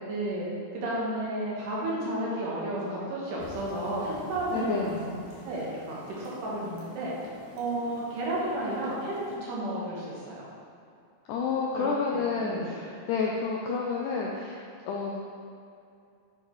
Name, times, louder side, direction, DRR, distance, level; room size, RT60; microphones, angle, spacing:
voice 1, 0.1-0.5 0.7-5.1 5.4-7.1 7.6-10.4 11.8-12.8, right 1 dB, 65° right, -6 dB, 2.8 m, -32 dB
sound 1, 3.4-9.4, left 2 dB, 60° left, 2.3 m, -48 dB
voice 2, 4.5-4.9 11.3-15.2, left 5 dB, 85° left, -2 dB, 1.8 m, -30 dB
9.1 x 3.8 x 4.7 m, 2.5 s
omnidirectional pair, 4.3 m